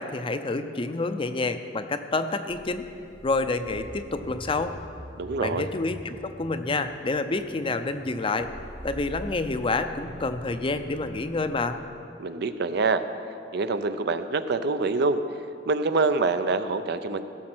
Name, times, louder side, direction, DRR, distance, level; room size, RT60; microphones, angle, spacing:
voice 1, 0.0-2.9 3.2-4.8 5.4-8.5 8.8-11.8, left 3 dB, 30° left, 9 dB, 0.5 m, -28 dB
sound 1, 2.5-12.0, equal, 80° right, 2.2 m, -44 dB
voice 2, 5.2-5.7 12.2-13.0 13.5-15.2 15.7-17.2, right 3 dB, 65° right, 10 dB, 0.5 m, -25 dB
16.0 x 6.5 x 6.1 m, 2.6 s
head